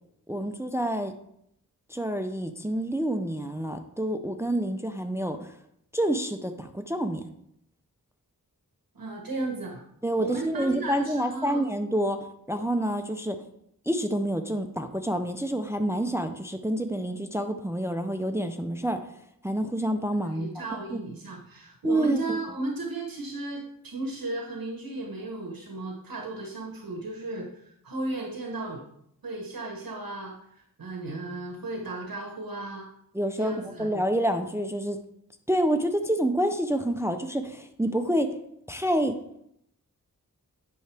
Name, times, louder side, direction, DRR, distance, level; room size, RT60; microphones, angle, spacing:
voice 1, 0.3-1.1 1.9-5.5 5.9-7.2 10.0-13.4 13.9-19.0 19.4-20.6 20.9-21.0 21.8-22.2 33.1-35.0 35.5-38.3 38.7-39.2, right 1 dB, 10° right, 7 dB, 0.5 m, -28 dB
voice 2, 8.9-9.8 10.2-11.6 20.2-28.8 29.2-32.9 33.3-33.9, right 2 dB, 70° right, 1 dB, 1.2 m, -35 dB
9.3 x 5.8 x 3.4 m, 0.75 s
wide cardioid pair, 95°, 36 cm